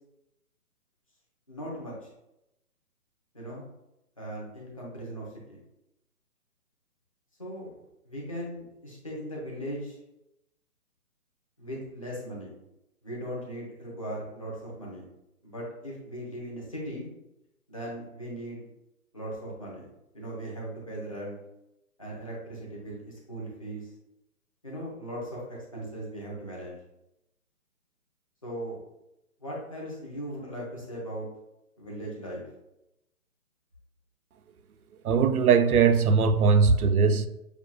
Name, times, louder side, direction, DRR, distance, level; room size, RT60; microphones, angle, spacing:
voice 1, 1.5-1.9 3.3-3.6 4.2-5.6 7.4-10.0 11.6-12.5 13.0-15.1 15.4-17.1 17.7-18.6 19.1-19.9 20.1-21.4 22.0-23.9 24.6-26.8 28.4-28.8 29.4-31.3 31.8-32.4, right 1 dB, 25° left, 0.7 m, -38 dB
voice 2, 35.0-37.3, right 5 dB, 75° right, 0.6 m, -20 dB
6.8 x 2.3 x 2.3 m
hypercardioid pair, 175°, 45 cm